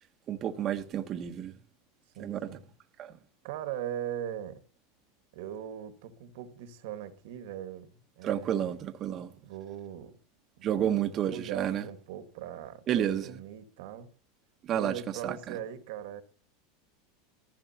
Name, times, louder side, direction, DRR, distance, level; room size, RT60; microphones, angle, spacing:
voice 1, 0.3-1.6 2.2-2.5 3.0-3.1 8.2-9.3 10.6-11.8 12.9-13.3 14.6-14.9 15.2-15.6, right 10 dB, 40° right, 1.1 m, -30 dB
voice 2, 2.1-2.7 3.4-4.6 5.3-8.7 9.4-10.2 10.7-14.1 14.7-16.2, right 10 dB, 70° right, 1.6 m, -40 dB
19.5 x 15.0 x 2.9 m
supercardioid pair, 115°, 0 cm